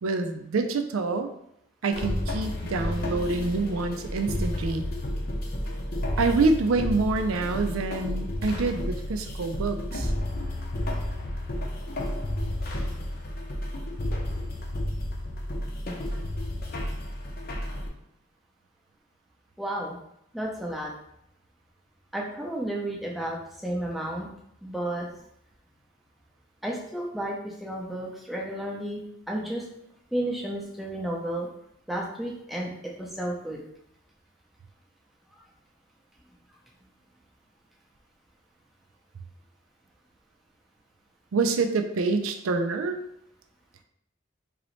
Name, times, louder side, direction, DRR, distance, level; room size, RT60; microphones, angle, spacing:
voice 1, 0.0-1.3 1.8-4.8 6.2-10.1 41.3-43.0, right 3 dB, 85° right, 6 dB, 0.4 m, -26 dB
sound 1, 1.9-17.9, left 1 dB, 45° left, 0.7 m, -31 dB
voice 2, 19.6-20.0 20.3-20.9 22.1-23.4 23.6-24.3 24.6-25.1 26.6-29.6 30.1-31.5 31.9-32.7 33.0-33.6, right 1 dB, ahead, -3 dB, 0.6 m, -32 dB
3.8 x 3.0 x 3.1 m, 0.76 s
head